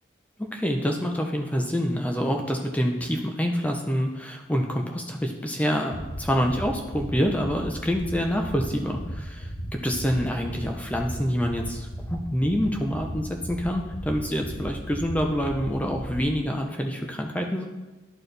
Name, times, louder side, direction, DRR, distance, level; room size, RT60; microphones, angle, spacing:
voice 1, 0.5-17.6, equal, 10° left, 2 dB, 0.5 m, -27 dB
sound 1, 5.9-6.1 6.4-6.6 6.9-7.1 7.4-7.6 7.9-8.1 8.4-8.6 8.9-9.1 9.4-9.6 9.9-10.1 10.4-10.6 10.9-11.1 11.4-11.6 11.9-12.1 12.4-12.6 12.9-13.1 13.4-13.6 13.9-14.1 14.4-14.6 14.9-15.1 15.4-15.6 15.9-16.1, equal, 80° left, 1.7 m, -35 dB
11.0 x 4.5 x 3.3 m, 1.2 s
head